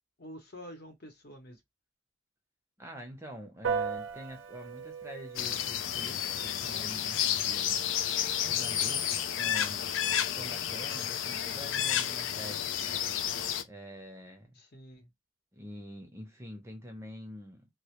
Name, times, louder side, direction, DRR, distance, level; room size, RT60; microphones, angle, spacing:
voice 1, 0.2-1.6 8.9-9.1 14.6-15.1, equal, 55° left, 0.8 m, -48 dB
voice 2, 2.8-7.9 8.5-9.9 10.3-13.1 13.6-14.6 15.5-17.7, equal, 15° right, 0.5 m, -46 dB
Piano, 3.6-13.4, right 6 dB, 90° right, 0.5 m, -42 dB
sound 1, 5.4-13.6, left 10 dB, 80° left, 0.3 m, -31 dB
2.1 x 2.0 x 2.9 m
head